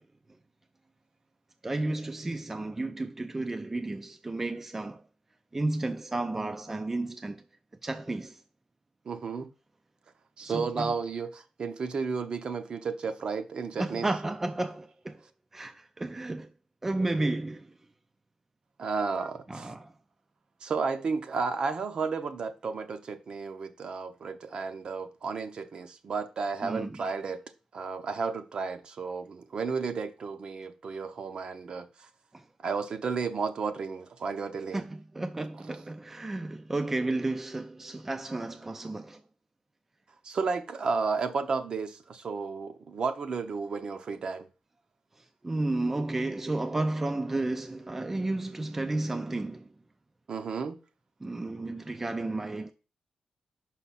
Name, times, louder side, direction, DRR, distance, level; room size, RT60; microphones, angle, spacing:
voice 1, 1.6-5.0 5.5-7.4 7.8-8.4 10.4-10.9 13.8-15.2 15.5-16.5 16.8-17.7 19.5-19.9 26.6-27.0 32.3-32.4 34.7-39.2 45.4-49.7 51.2-52.7, right 2 dB, 15° right, 0.3 m, -32 dB
voice 2, 9.0-9.5 10.4-14.1 18.8-19.7 20.6-27.4 27.7-32.1 32.6-34.8 40.2-44.5 50.3-50.8, right 5 dB, 50° right, 0.7 m, -33 dB
5.8 x 5.4 x 4.1 m
wide cardioid pair, 145°, 2 cm